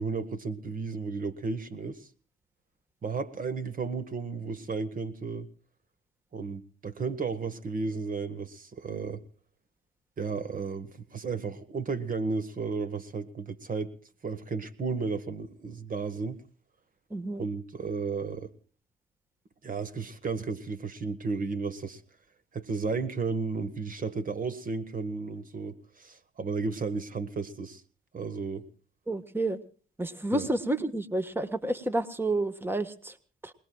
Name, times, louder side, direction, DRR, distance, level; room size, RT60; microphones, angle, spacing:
voice 1, 0.0-2.1 3.0-5.5 6.3-9.2 10.2-13.9 14.2-16.4 17.4-18.5 19.6-22.0 22.5-27.8 28.1-28.7 30.3-30.5, right 4 dB, 45° right, 1.5 m, -33 dB
voice 2, 17.1-17.4 29.1-29.6 30.0-33.1 33.4-33.5, right 2 dB, 10° right, 1.5 m, -30 dB
27.5 x 20.0 x 2.4 m
cardioid pair, 90°, 20 cm